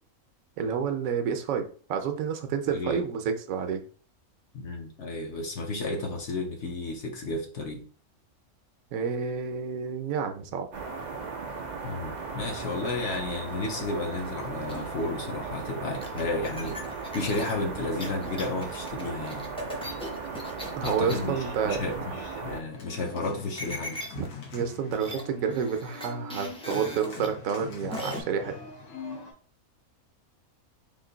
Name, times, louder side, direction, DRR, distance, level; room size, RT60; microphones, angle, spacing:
voice 1, 0.6-3.8 8.9-10.7 20.2-20.3 20.8-21.8 24.2-24.3 24.5-28.5, right 6 dB, 75° right, 6 dB, 1.0 m, -29 dB
voice 2, 2.7-3.0 4.5-7.8 11.8-16.8 17.1-19.5 20.8-24.0, left 2 dB, 60° left, 3 dB, 0.9 m, -32 dB
sound 1, 10.7-22.6, right 4 dB, 90° right, 0.4 m, -37 dB
sound 2, 14.7-15.0 16.0-21.2 23.6-24.3 24.6-24.7 24.9-25.2 25.5-27.3 27.9-28.2, equal, 10° left, 0.3 m, -38 dB
Organ, 22.7-29.3, left 5 dB, 80° left, 1.5 m, -43 dB
3.6 x 2.6 x 3.8 m, 0.42 s
omnidirectional pair, 1.5 m